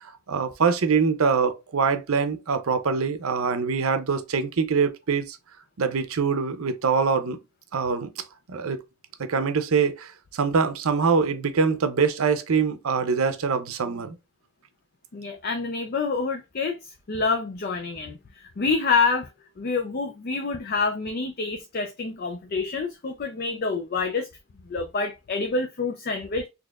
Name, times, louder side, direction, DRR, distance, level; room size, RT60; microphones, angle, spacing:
voice 1, 0.0-5.4 5.8-7.4 7.7-8.1 8.5-8.8 9.2-14.2, right 5 dB, 80° right, 0.6 m, -24 dB
voice 2, 15.1-19.3 19.6-24.3 24.7-26.5, left 4 dB, 45° left, 0.4 m, -27 dB
4.0 x 3.0 x 2.3 m
head